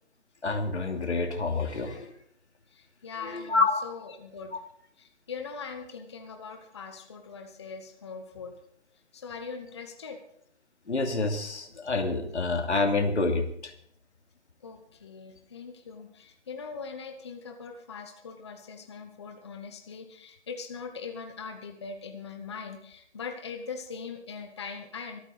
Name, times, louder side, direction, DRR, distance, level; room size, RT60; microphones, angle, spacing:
voice 1, 0.4-2.1 3.2-3.8 10.9-13.7, left 3 dB, 80° left, 4 dB, 2.8 m, -27 dB
voice 2, 2.7-4.5 5.0-8.5 9.1-10.2 14.6-25.2, left 5 dB, 25° left, 5 dB, 1.0 m, -41 dB
25.0 x 9.0 x 4.0 m, 0.71 s
figure-of-eight pair, 165°, 34 cm